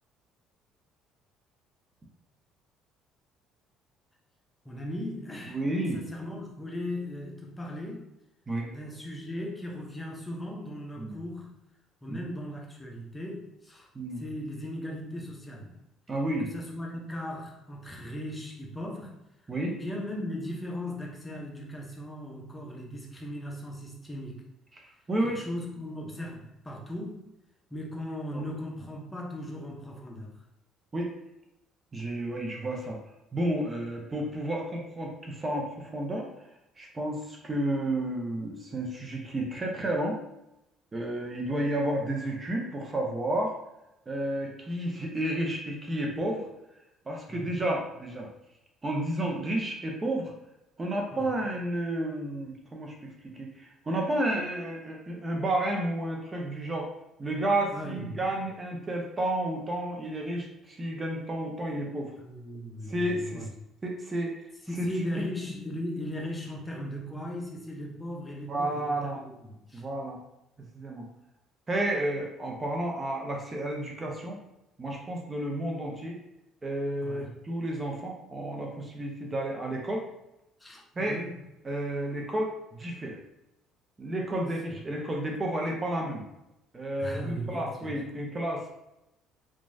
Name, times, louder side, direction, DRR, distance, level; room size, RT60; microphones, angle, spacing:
voice 1, 4.6-5.6 5.9-8.0 8.7-11.5 12.0-13.9 14.2-15.8 16.4-19.2 19.7-24.4 25.2-27.2 27.7-30.4 47.3-47.5 51.1-51.3 57.7-58.3 62.2-63.5 64.7-69.8 77.0-77.3 80.6-81.4 87.0-88.1, left 1 dB, 15° left, -1 dB, 0.7 m, -38 dB
voice 2, 5.5-6.0 8.5-8.7 11.0-11.1 12.1-12.2 13.9-14.2 16.1-16.5 19.5-19.7 25.1-25.4 28.3-28.4 30.9-31.1 31.9-33.0 33.3-36.2 36.8-40.2 40.9-43.5 44.1-46.4 47.1-48.3 48.8-50.3 50.8-52.9 53.3-56.9 57.2-62.1 62.9-63.5 63.8-64.3 64.8-64.9 65.1-65.3 68.5-69.2 69.7-70.2 70.7-71.1 71.7-74.4 74.8-76.2 76.6-80.0 81.0-81.2 81.6-83.2 84.0-86.2 86.7-88.7, right 1 dB, 30° right, 0 dB, 0.6 m, -31 dB
3.0 x 2.2 x 2.6 m, 0.89 s
supercardioid pair, 75°, 0 cm